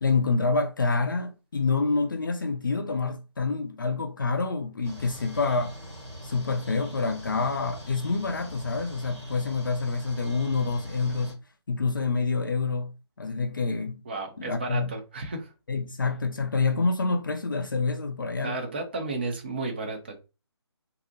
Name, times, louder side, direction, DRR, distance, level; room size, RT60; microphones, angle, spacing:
voice 1, 0.0-5.8 6.2-11.3 11.7-12.9 13.2-14.0 14.4-14.9 15.7-18.6, left 4 dB, 50° left, 0.4 m, -27 dB
sound 1, 4.8-11.3, equal, 80° right, 1.4 m, -42 dB
voice 2, 14.0-15.5 18.4-20.2, right 3 dB, 25° right, 0.4 m, -33 dB
2.6 x 2.0 x 2.6 m
figure-of-eight pair, 150°, 14 cm